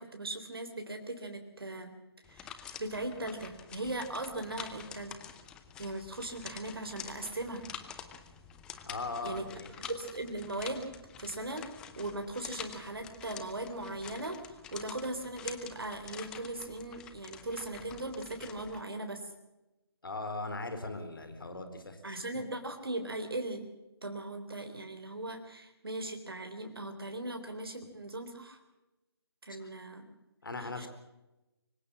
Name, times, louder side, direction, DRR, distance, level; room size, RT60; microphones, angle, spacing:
voice 1, 0.0-1.9 2.3-5.1 5.8-7.6 9.2-9.4 9.9-10.9 11.2-11.6 12.0-19.2 22.0-23.7 24.0-28.6 29.4-30.1 30.6-30.9, right 2 dB, 65° right, 6 dB, 3.7 m, -39 dB
sound 1, 2.2-18.8, left 8 dB, 5° left, 0.7 m, -48 dB
voice 2, 8.9-9.7 20.0-22.2 29.6-29.7 30.4-30.9, left 3 dB, 55° left, 8 dB, 4.3 m, -39 dB
24.5 x 16.5 x 7.3 m, 1.0 s
figure-of-eight pair, 150°, 14 cm